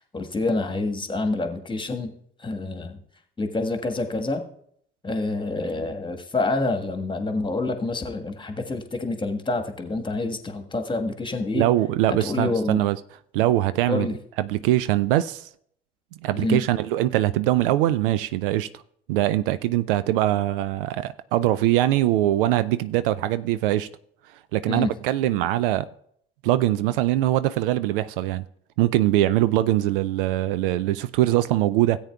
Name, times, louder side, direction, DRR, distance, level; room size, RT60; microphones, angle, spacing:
voice 1, 0.1-2.1 2.4-3.0 3.4-4.4 5.0-11.7 12.2-12.8 13.9-14.2 16.4-16.7 24.7-24.9, left 2 dB, 15° left, 1.5 m, -27 dB
voice 2, 11.5-13.0 13.3-14.1 14.4-15.5 16.2-18.7 19.1-23.9 24.5-25.9 26.4-28.4 28.8-32.0, right 14 dB, 65° right, 0.5 m, -22 dB
17.0 x 8.5 x 2.3 m
figure-of-eight pair, 55°, 29 cm